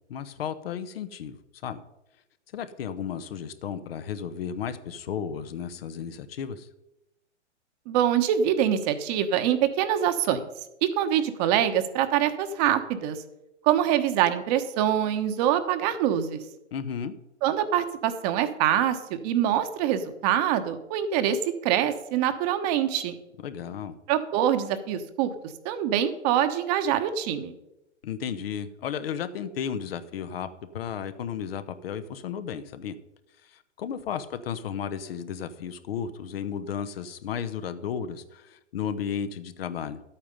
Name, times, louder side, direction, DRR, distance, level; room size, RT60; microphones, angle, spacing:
voice 1, 0.1-1.8 2.5-6.7 16.7-17.2 23.4-24.0 28.0-30.5 30.7-33.0 33.4-40.0, left 8 dB, 55° left, 11 dB, 1.0 m, -34 dB
voice 2, 7.9-10.4 10.8-13.2 13.6-16.4 17.4-23.1 24.1-25.3 25.6-27.5, right 10 dB, 35° right, 9 dB, 1.1 m, -24 dB
12.0 x 8.6 x 5.4 m, 0.90 s
figure-of-eight pair, 120°, 35 cm